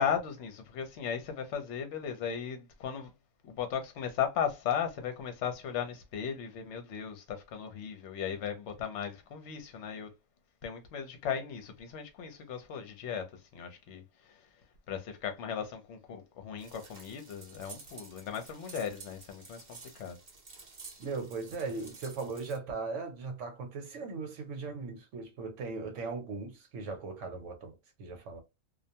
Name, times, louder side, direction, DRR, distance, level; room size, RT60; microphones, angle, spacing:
voice 1, 0.0-3.1 3.4-10.1 10.6-13.2 13.5-14.4 14.9-20.2, left 8 dB, 60° left, 0.9 m, -36 dB
sound 1, 16.6-22.6, right 5 dB, 40° right, 0.7 m, -51 dB
voice 2, 21.0-28.4, right 4 dB, 60° right, 1.1 m, -38 dB
2.5 x 2.1 x 2.7 m
omnidirectional pair, 1.5 m